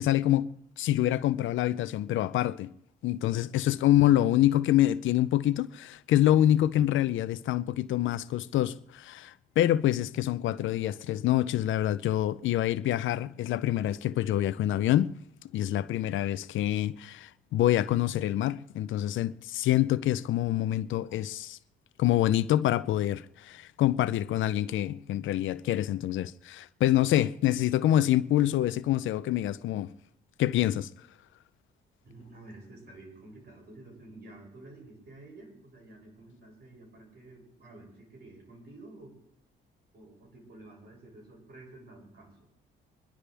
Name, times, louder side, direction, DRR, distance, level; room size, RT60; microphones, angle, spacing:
voice 1, 0.0-2.7 3.0-15.1 15.5-21.6 22.0-29.9 30.4-30.9, left 13 dB, 80° left, 0.6 m, -26 dB
voice 2, 32.0-39.2 39.9-42.5, right 2 dB, 55° right, 7.2 m, -50 dB
26.0 x 11.0 x 3.5 m
cardioid pair, 90°, 20 cm